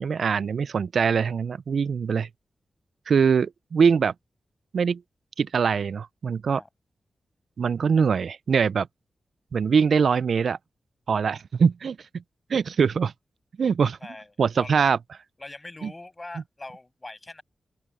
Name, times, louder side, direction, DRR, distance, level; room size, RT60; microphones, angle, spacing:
voice 1, 0.0-2.3 3.1-4.1 4.7-5.0 5.4-6.6 7.6-8.9 9.5-10.6 11.1-12.0 12.5-13.1 13.6-14.0 14.4-15.0 15.8-15.9, right 6 dB, 75° right, 0.3 m, -22 dB
voice 2, 14.0-14.9 15.4-17.4, left 2 dB, 30° left, 6.5 m, -42 dB
open air
cardioid pair, 45°, 0 cm